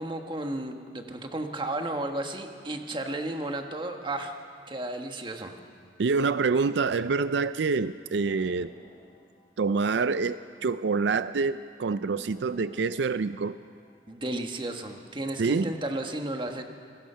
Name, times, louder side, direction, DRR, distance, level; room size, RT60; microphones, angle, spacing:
voice 1, 0.0-4.4 4.7-5.5 14.1-16.6, right 1 dB, 30° right, 4 dB, 1.5 m, -33 dB
voice 2, 6.0-8.7 9.6-13.6 15.4-15.7, right 4 dB, 80° right, 13 dB, 0.5 m, -26 dB
sound 1, 8.1-11.2 11.5-11.6 12.1-15.0 15.4-16.1, equal, 45° left, 4.1 m, -57 dB
27.5 x 20.5 x 5.7 m, 2.3 s
head